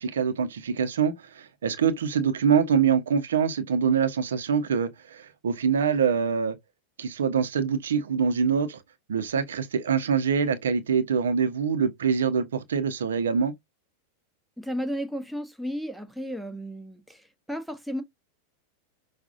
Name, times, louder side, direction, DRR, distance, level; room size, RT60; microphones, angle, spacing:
voice 1, 0.0-6.6 7.0-8.8 9.1-13.5, right 6 dB, 65° right, 0.8 m, -25 dB
voice 2, 14.6-17.2 17.5-18.0, equal, ahead, 0.9 m, -33 dB
5.9 x 2.5 x 2.5 m
figure-of-eight pair, 90°, 0 cm